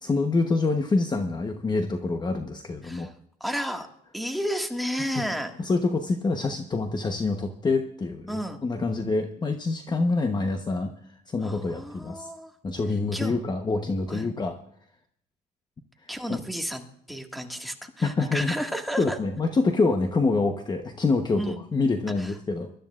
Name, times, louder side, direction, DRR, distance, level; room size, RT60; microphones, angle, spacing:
voice 1, 0.0-3.1 5.6-10.9 11.3-12.3 12.6-14.6 16.3-16.4 18.0-18.6 19.0-22.7, left 3 dB, 25° left, 6 dB, 1.0 m, -26 dB
voice 2, 2.8-3.1 3.4-3.9 4.1-5.5 8.3-8.6 11.4-12.5 13.1-13.4 14.1-14.3 16.1-19.2 21.4-21.6 22.2-22.3, equal, ahead, 4 dB, 1.9 m, -32 dB
24.5 x 13.0 x 2.5 m, 0.71 s
cardioid pair, 110°, 17 cm